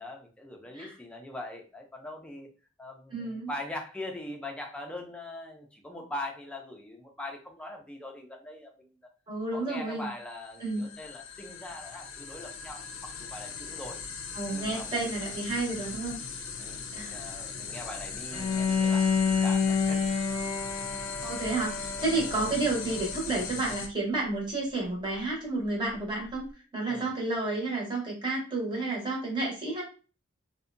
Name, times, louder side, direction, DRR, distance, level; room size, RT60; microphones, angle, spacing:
voice 1, 0.0-2.5 2.8-8.9 9.5-14.0 14.5-15.2 16.6-20.0 22.1-22.3 26.8-27.1, left 1 dB, 5° left, 1 dB, 0.4 m, -42 dB
voice 2, 3.1-3.5 9.3-10.1 10.6-10.8 14.3-16.2 16.9-17.2 21.2-26.4 26.7-29.8, right 2 dB, 20° right, -2 dB, 0.9 m, -31 dB
sound 1, 10.3-23.9, left 5 dB, 90° left, 0.4 m, -39 dB
Bowed string instrument, 18.3-23.3, left 5 dB, 25° left, 0.9 m, -29 dB
2.6 x 2.1 x 2.4 m, 0.36 s
head